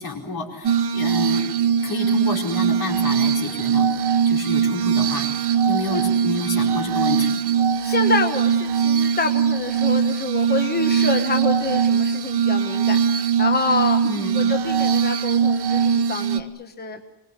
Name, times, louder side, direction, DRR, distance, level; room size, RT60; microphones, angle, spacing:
voice 1, 0.0-1.5 1.8-3.9 4.2-5.3 5.7-7.4 14.0-14.4, left 2 dB, 65° left, 2 dB, 4.9 m, -29 dB
Glass, 0.6-16.4, right 7 dB, 70° right, 1.2 m, -21 dB
voice 2, 6.9-14.0 14.3-17.0, left 3 dB, 25° left, 5 dB, 1.3 m, -27 dB
25.0 x 20.5 x 9.8 m, 1.0 s
wide cardioid pair, 180°, 40 cm